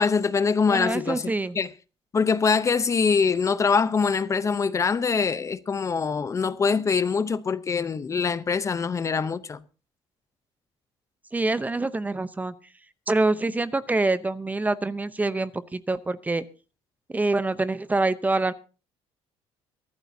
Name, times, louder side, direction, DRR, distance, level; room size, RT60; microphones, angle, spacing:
voice 1, 0.0-1.7 2.1-9.6, left 5 dB, 25° left, 0.7 m, -24 dB
voice 2, 0.7-1.6 11.3-12.5 13.1-16.4 17.1-18.5, right 2 dB, 15° right, 0.7 m, -25 dB
23.5 x 12.0 x 2.8 m
cardioid pair, 120°, 11 cm